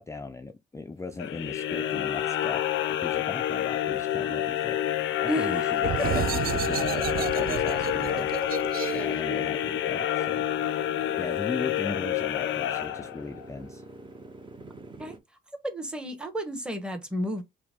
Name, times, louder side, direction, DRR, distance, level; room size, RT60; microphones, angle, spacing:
voice 1, 0.0-2.6 3.0-4.8 5.2-7.1 7.3-8.3 8.9-10.5 11.2-13.8, left 3 dB, 15° left, 0.4 m, -37 dB
sound 1, 1.2-13.5, left 11 dB, 75° left, 0.5 m, -28 dB
Motorcycle, 2.7-15.2, right 2 dB, 25° right, 0.7 m, -50 dB
voice 2, 5.3-6.1 15.0-15.2 15.6-17.4, equal, 5° right, 1.0 m, -32 dB
sound 2, 5.8-11.2, right 9 dB, 50° right, 0.4 m, -33 dB
4.7 x 2.1 x 3.5 m
cardioid pair, 90°, 20 cm